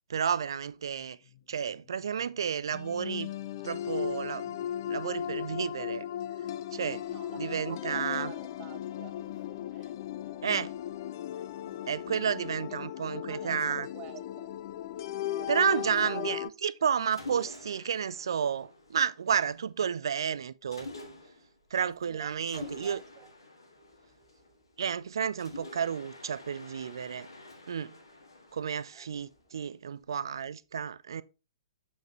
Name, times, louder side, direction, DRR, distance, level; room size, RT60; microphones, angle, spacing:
voice 1, 0.1-1.2 1.5-3.3 3.6-6.1 6.7-7.1 7.4-8.3 10.4-10.7 11.9-13.9 15.5-20.9 21.7-23.0 24.8-27.3 27.7-28.0 28.5-31.2, right 7 dB, 60° right, 0.3 m, -31 dB
sound 1, 2.7-16.5, left 11 dB, 45° left, 0.4 m, -37 dB
voice 2, 6.8-10.4 11.6-12.1 12.7-14.5 14.7-16.3 21.8-23.3 28.9-29.1, right 10 dB, 30° right, 0.8 m, -50 dB
Mechanisms, 17.1-19.5 20.7-21.6 22.5-24.8 25.4-29.5, left 2 dB, 75° left, 1.5 m, -47 dB
7.1 x 5.5 x 3.1 m
figure-of-eight pair, 115°, 3 cm